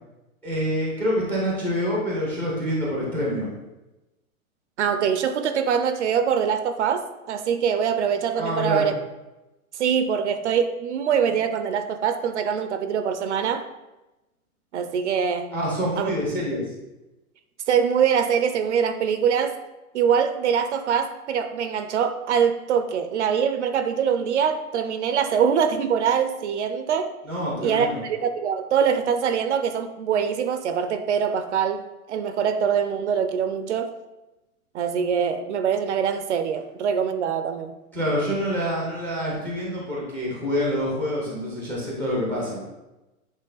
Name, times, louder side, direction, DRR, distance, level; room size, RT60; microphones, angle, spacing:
voice 1, 0.4-3.5 8.3-8.9 15.5-16.7 27.2-28.0 37.9-42.6, equal, 5° left, -4 dB, 0.5 m, -26 dB
voice 2, 4.8-8.9 9.7-13.7 14.7-15.5 16.0-16.1 17.7-19.6 19.9-27.1 27.6-33.9 34.7-37.7, right 7 dB, 55° right, 9 dB, 0.5 m, -23 dB
8.1 x 3.3 x 3.9 m, 1.0 s
hypercardioid pair, 160°, 43 cm